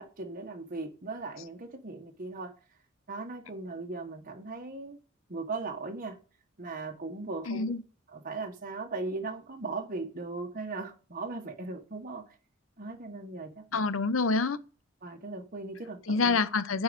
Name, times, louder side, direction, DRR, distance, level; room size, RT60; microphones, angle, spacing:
voice 1, 0.0-2.5 3.1-5.0 5.3-6.2 6.6-7.7 8.1-12.3 12.8-13.8 15.0-16.4, right 3 dB, 45° right, 1.3 m, -38 dB
voice 2, 7.5-7.8 13.7-14.6 16.1-16.8, left 4 dB, 75° left, 0.8 m, -27 dB
10.5 x 4.7 x 7.9 m
head